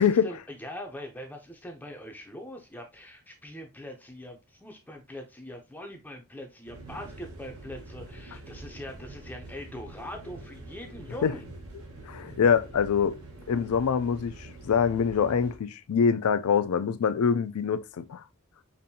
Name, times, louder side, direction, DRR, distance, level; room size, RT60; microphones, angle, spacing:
voice 1, 0.0-11.5, left 1 dB, 10° left, 0.5 m, -42 dB
sound 1, 6.7-15.6, right 2 dB, 75° right, 1.0 m, -45 dB
voice 2, 12.0-13.2 13.5-18.2, left 6 dB, 75° left, 0.4 m, -24 dB
5.3 x 2.6 x 2.7 m
head